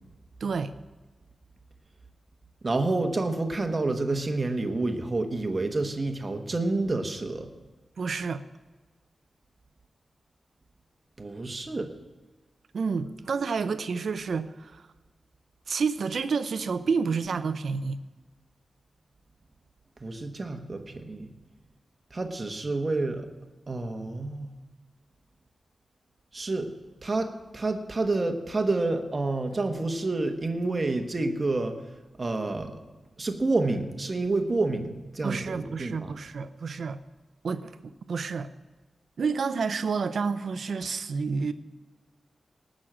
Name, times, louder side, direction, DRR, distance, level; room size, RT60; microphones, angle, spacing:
voice 1, 0.4-0.7 8.0-8.4 12.7-14.8 15.7-18.0 35.2-37.0 37.4-38.5 39.2-41.5, right 5 dB, 60° right, 0.8 m, -29 dB
voice 2, 2.6-7.5 11.2-11.9 13.3-13.5 20.0-21.3 22.1-23.3 23.7-24.5 26.3-26.7 27.0-31.8 32.2-32.8 33.2-36.1, right 2 dB, 30° right, 1.3 m, -29 dB
19.0 x 6.4 x 7.5 m
wide cardioid pair, 170°, 0 cm